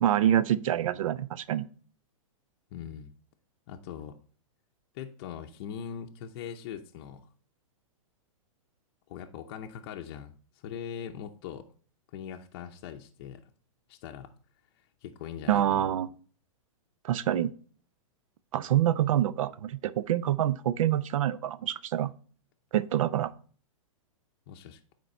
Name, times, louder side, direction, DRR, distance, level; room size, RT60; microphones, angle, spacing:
voice 1, 0.0-1.7 15.5-16.1 17.0-17.5 18.5-22.1 22.7-23.3, right 11 dB, 70° right, 0.5 m, -26 dB
voice 2, 2.7-3.1 3.7-4.2 4.9-7.3 9.1-11.7 12.1-13.4 13.9-14.3 15.0-15.9 24.5-24.8, left 8 dB, 45° left, 0.7 m, -41 dB
9.5 x 4.5 x 4.3 m
hypercardioid pair, 150°, 18 cm